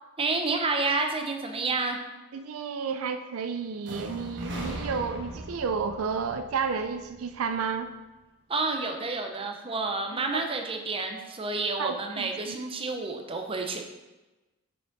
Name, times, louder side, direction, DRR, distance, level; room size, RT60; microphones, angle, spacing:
voice 1, 0.2-2.0 8.5-13.8, right 3 dB, 25° right, 4 dB, 0.7 m, -29 dB
voice 2, 2.3-7.9 10.1-10.4 11.8-12.6, right 5 dB, 75° right, 8 dB, 0.4 m, -31 dB
sound 1, 3.8-7.8, right 1 dB, 55° right, 1.1 m, -39 dB
6.2 x 5.8 x 4.0 m, 1.1 s
head